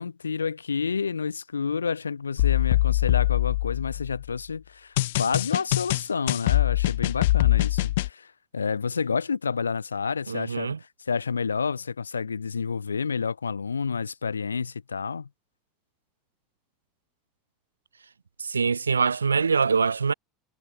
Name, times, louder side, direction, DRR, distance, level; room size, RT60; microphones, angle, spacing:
voice 1, 0.0-15.3, left 5 dB, 80° left, 1.1 m, -29 dB
sound 1, 2.4-4.2 5.0-8.1, left 17 dB, 65° left, 0.3 m, -23 dB
voice 2, 10.3-10.8 18.4-20.1, right 5 dB, 85° right, 0.4 m, -24 dB
figure-of-eight pair, 70°, 0 cm